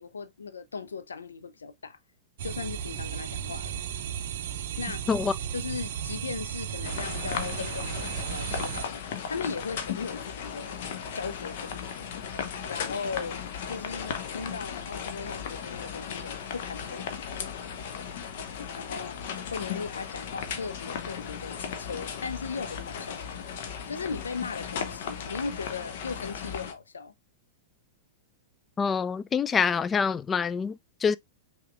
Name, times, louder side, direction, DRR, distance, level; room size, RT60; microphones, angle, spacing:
voice 1, 0.0-2.0 2.4-3.8 4.8-5.0 5.5-9.0 9.3-10.8 11.1-12.1 12.7-17.9 18.7-19.2 19.5-23.2 23.9-27.1, left 5 dB, 70° left, 0.5 m, -38 dB
sound 1, 2.4-8.9, right 9 dB, 55° right, 0.5 m, -35 dB
sound 2, 6.8-26.7, left 7 dB, 50° left, 0.9 m, -36 dB
voice 2, 28.8-31.2, left 6 dB, 20° left, 0.3 m, -26 dB
5.7 x 3.6 x 2.4 m
figure-of-eight pair, 100°, 0 cm